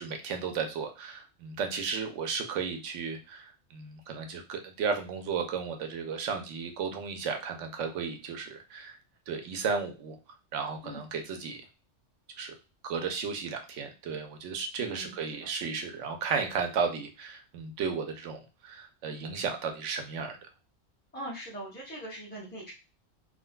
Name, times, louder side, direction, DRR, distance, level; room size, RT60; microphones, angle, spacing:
voice 1, 0.0-9.0 9.3-10.2 10.5-11.6 12.4-12.6 12.8-20.4, right 5 dB, 85° right, 5 dB, 1.0 m, -34 dB
voice 2, 14.8-15.5 21.1-22.7, right 1 dB, 10° left, -5 dB, 0.9 m, -41 dB
3.7 x 2.2 x 2.2 m, 0.30 s
omnidirectional pair, 1.2 m